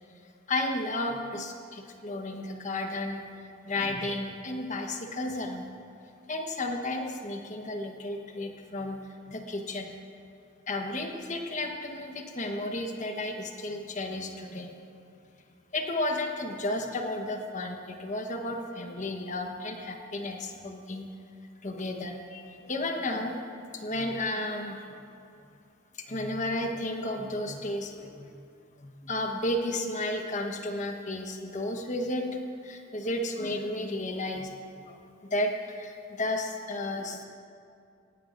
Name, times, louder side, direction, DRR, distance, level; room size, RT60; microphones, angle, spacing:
voice 1, 0.5-3.3 3.6-5.7 6.3-9.0 9.3-9.9 10.7-14.7 15.7-21.1 21.6-23.4 23.7-24.9 26.0-28.3 28.8-34.5 34.9-37.2, left 1 dB, 35° left, 3 dB, 1.2 m, -33 dB
18.5 x 17.0 x 2.6 m, 2.5 s
head